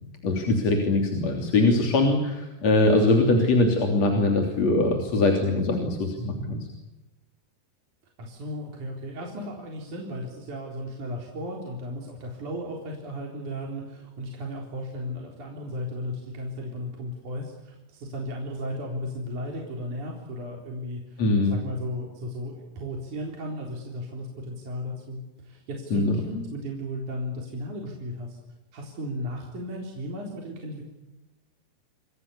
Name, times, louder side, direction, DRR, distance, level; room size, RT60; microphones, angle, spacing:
voice 1, 0.2-6.7 21.2-21.6 25.9-26.2, left 2 dB, 45° left, 2 dB, 4.1 m, -22 dB
voice 2, 8.2-28.4 28.7-30.8, equal, 50° right, 0 dB, 5.2 m, -35 dB
30.0 x 24.5 x 7.0 m, 1.1 s
omnidirectional pair, 4.6 m